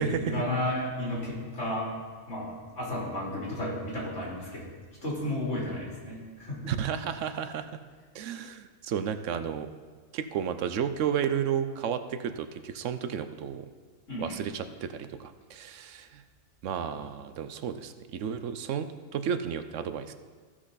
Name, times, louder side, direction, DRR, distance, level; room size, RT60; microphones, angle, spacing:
voice 1, 0.0-1.9 2.3-4.7 5.0-6.7 14.1-14.4, left 1 dB, 70° left, -5 dB, 3.5 m, -33 dB
voice 2, 6.7-7.8 8.1-9.7 10.1-13.7 14.2-16.2 16.6-18.9 19.1-20.1, right 8 dB, 80° right, 10 dB, 1.0 m, -32 dB
15.0 x 6.0 x 4.0 m, 1.5 s
omnidirectional pair, 1.3 m